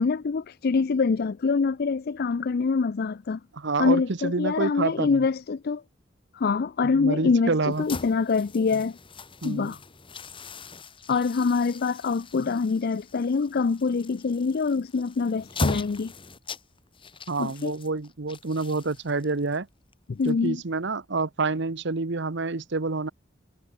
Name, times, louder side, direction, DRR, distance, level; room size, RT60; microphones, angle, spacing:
voice 1, 0.0-3.4 3.8-5.8 6.3-9.0 9.4-9.8 11.1-16.1 17.4-17.7 20.1-20.6, left 4 dB, 50° left, 0.4 m, -25 dB
voice 2, 3.6-5.2 6.8-7.8 9.4-9.7 17.3-19.7 20.2-23.1, right 3 dB, 65° right, 1.0 m, -28 dB
sound 1, 7.7-20.8, left 2 dB, 25° left, 1.6 m, -39 dB
head